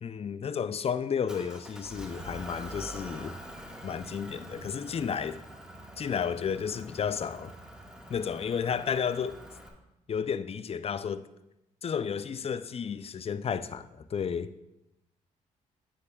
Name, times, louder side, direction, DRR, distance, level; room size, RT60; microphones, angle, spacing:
voice 1, 0.0-3.3 3.8-5.3 6.0-7.5 8.1-9.4 10.1-11.2 11.8-14.5, left 7 dB, 40° left, 0.5 m, -32 dB
Motor vehicle (road) / Engine, 1.3-9.7, right 1 dB, 5° right, 1.7 m, -45 dB
9.9 x 9.4 x 2.4 m
supercardioid pair, 55°, 15 cm